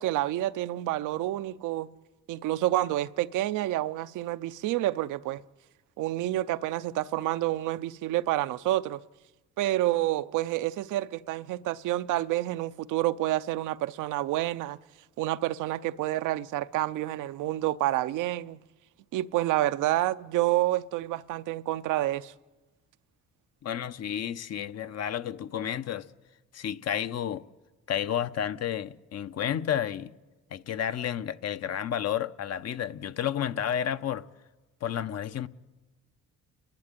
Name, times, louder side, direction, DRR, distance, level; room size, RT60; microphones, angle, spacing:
voice 1, 0.0-1.9 2.3-5.4 6.0-9.0 9.6-14.8 15.2-18.6 19.1-22.3, right 15 dB, 85° right, 0.6 m, -28 dB
voice 2, 23.6-26.1 26.5-27.4 27.9-30.1 30.5-34.2 34.8-35.5, left 9 dB, 55° left, 0.8 m, -31 dB
30.0 x 11.5 x 9.1 m
cardioid pair, 90°, 30 cm